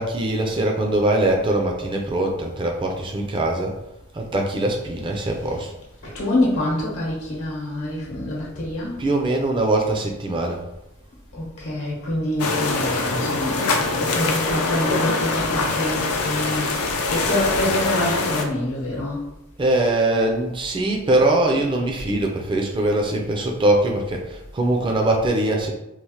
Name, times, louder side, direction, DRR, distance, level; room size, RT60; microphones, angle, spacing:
voice 1, 0.0-3.7 4.1-5.7 9.0-10.6 19.6-25.7, right 1 dB, 20° right, 1 dB, 0.3 m, -22 dB
voice 2, 6.0-9.0 11.3-19.3, left 1 dB, 70° left, -4 dB, 0.8 m, -26 dB
sound 1, 12.4-18.4, left 3 dB, 90° left, 0.4 m, -23 dB
3.1 x 2.0 x 2.8 m, 0.90 s
head